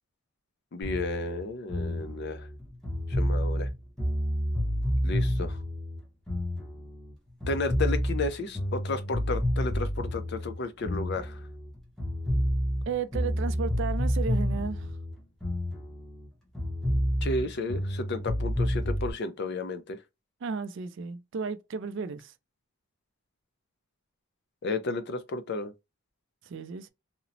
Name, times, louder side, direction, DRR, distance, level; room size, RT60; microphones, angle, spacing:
voice 1, 0.7-2.5 3.1-3.7 5.0-5.6 7.5-11.4 17.2-20.0 24.6-25.7, left 3 dB, 50° left, 0.4 m, -33 dB
sound 1, 0.8-7.1 7.4-11.7 12.0-16.3 16.5-19.1, equal, ahead, 0.7 m, -29 dB
voice 2, 12.9-14.9 20.4-22.3 26.5-26.9, right 5 dB, 60° right, 0.3 m, -34 dB
2.9 x 2.0 x 2.5 m
head